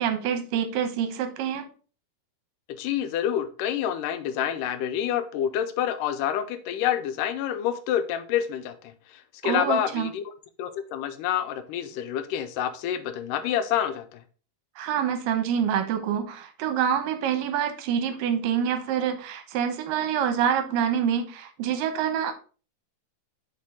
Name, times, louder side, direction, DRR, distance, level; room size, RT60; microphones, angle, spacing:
voice 1, 0.0-1.7 9.4-10.1 14.8-22.3, right 8 dB, 85° right, 2.5 m, -26 dB
voice 2, 2.7-10.2 10.6-14.2, left 10 dB, 85° left, 2.2 m, -28 dB
7.3 x 4.3 x 3.6 m
omnidirectional pair, 3.9 m